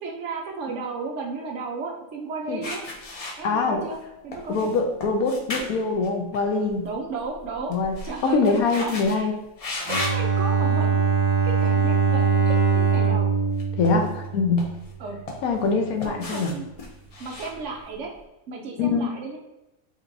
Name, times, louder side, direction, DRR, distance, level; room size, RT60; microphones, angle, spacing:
voice 1, 0.0-2.8 3.4-4.0 4.2-4.7 6.8-7.8 8.0-9.3 9.9-11.1 11.4-13.3 15.0-15.2 16.0-16.6 17.2-18.1 18.5-19.4, right 4 dB, 65° right, 1 dB, 0.8 m, -34 dB
sound 1, 2.6-4.0 4.3-6.9 7.2-9.2 9.6-10.2 10.9-11.1 13.4-14.3 14.6-15.7 16.0-18.1, left 2 dB, 70° left, 0.3 m, -36 dB
voice 2, 3.4-3.8 4.5-6.9 7.7-8.0 8.2-9.3 13.8-14.7 15.4-16.5 18.8-19.1, left 4 dB, 85° left, 4 dB, 1.1 m, -23 dB
Bowed string instrument, 9.8-14.8, right 6 dB, 20° right, 1.1 m, -22 dB
5.3 x 2.9 x 2.6 m, 0.96 s
omnidirectional pair, 1.5 m